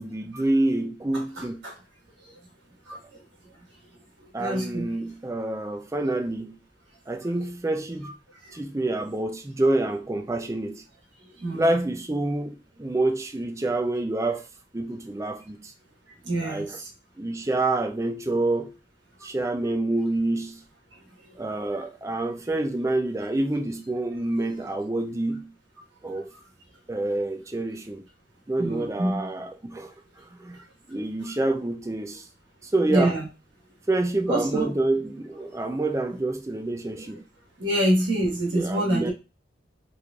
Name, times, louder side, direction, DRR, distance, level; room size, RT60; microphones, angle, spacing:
voice 1, 0.0-1.6 4.3-6.5 7.1-8.1 8.5-10.8 11.5-14.5 14.7-15.7 16.4-16.8 17.2-18.7 19.2-20.6 21.4-25.5 26.0-26.3 26.9-28.0 28.5-29.9 30.4-30.6 30.9-32.2 32.6-33.1 33.9-37.2 38.5-39.1, right 2 dB, 15° right, 0.4 m, -27 dB
voice 2, 1.1-1.8 2.2-2.4 2.8-3.2 4.2-4.9 7.2-7.3 8.0-8.1 8.4-8.6 11.4-11.7 16.2-16.9 21.2-21.8 26.3-26.4 28.6-29.3 30.9-31.3 32.9-33.3 34.3-34.7 37.6-39.1, right 1 dB, 80° right, 1.4 m, -27 dB
3.9 x 3.2 x 2.3 m
head